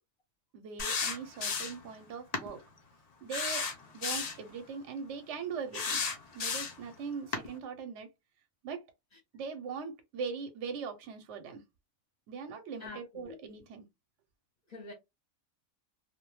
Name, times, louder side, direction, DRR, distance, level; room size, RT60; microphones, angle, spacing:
voice 1, 0.5-2.6 3.2-3.7 3.9-6.0 6.3-8.1 8.6-8.8 9.3-11.6 12.3-13.9, right 5 dB, 65° right, 0.8 m, -40 dB
sound 1, 0.8-1.9 2.3-2.5 3.3-4.4 5.7-6.9 7.3-7.5, left 5 dB, 75° left, 0.3 m, -33 dB
voice 2, 12.8-13.4 14.7-14.9, left 3 dB, 40° left, 0.7 m, -46 dB
2.3 x 2.1 x 3.0 m
omnidirectional pair, 1.4 m